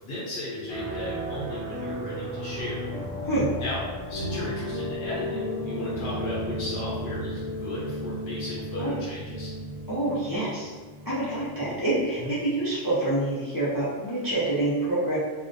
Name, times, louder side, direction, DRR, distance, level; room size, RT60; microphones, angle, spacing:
voice 1, 0.0-2.8 3.6-3.8 4.1-9.5 12.2-12.3, left 1 dB, 60° left, -7 dB, 0.7 m, -35 dB
sound 1, 0.7-12.8, equal, 30° right, 0.4 m, -34 dB
voice 2, 9.9-10.7 11.0-15.2, right 1 dB, 35° left, -10 dB, 0.3 m, -27 dB
2.4 x 2.1 x 2.5 m, 1.4 s
omnidirectional pair, 1.4 m